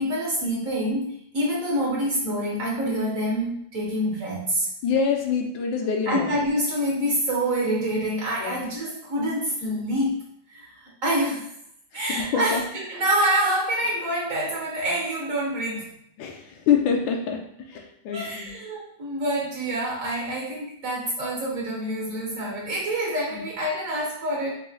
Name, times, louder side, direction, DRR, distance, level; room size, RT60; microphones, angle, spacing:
voice 1, 0.0-4.7 6.1-10.2 10.5-11.5 11.9-15.9 18.1-24.5, right 1 dB, 55° right, -4 dB, 1.1 m, -26 dB
voice 2, 4.8-6.3 8.4-8.6 12.1-12.6 16.2-17.4 17.7-18.5 23.3-23.4, left 6 dB, 80° left, 2 dB, 1.3 m, -25 dB
4.9 x 2.7 x 2.7 m, 0.71 s
omnidirectional pair, 2.2 m